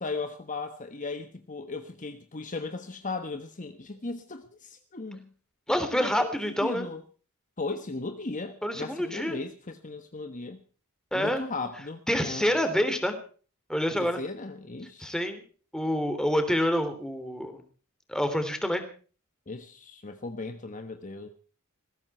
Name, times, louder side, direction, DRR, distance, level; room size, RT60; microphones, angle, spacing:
voice 1, 0.0-5.3 5.9-7.0 7.6-10.6 11.1-12.6 14.0-15.2 19.5-21.3, left 3 dB, 35° left, 1.3 m, -37 dB
voice 2, 5.7-6.9 8.6-9.4 11.1-11.4 12.1-13.2 13.7-14.2 15.0-15.4 15.7-17.6 18.1-18.8, equal, 5° left, 3.2 m, -27 dB
20.0 x 16.0 x 4.4 m
head